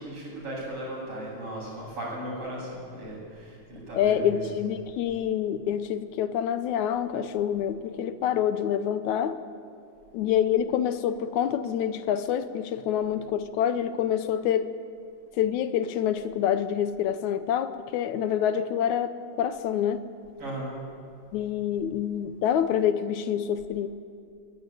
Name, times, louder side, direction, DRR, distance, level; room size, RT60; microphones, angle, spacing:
voice 1, 0.0-4.4 20.4-20.7, right 1 dB, 50° right, -9 dB, 8.6 m, -36 dB
voice 2, 3.9-9.3 10.1-14.7 15.4-20.0 21.3-23.9, left 9 dB, 80° left, 11 dB, 2.2 m, -27 dB
22.0 x 20.0 x 9.2 m, 2.3 s
omnidirectional pair, 3.3 m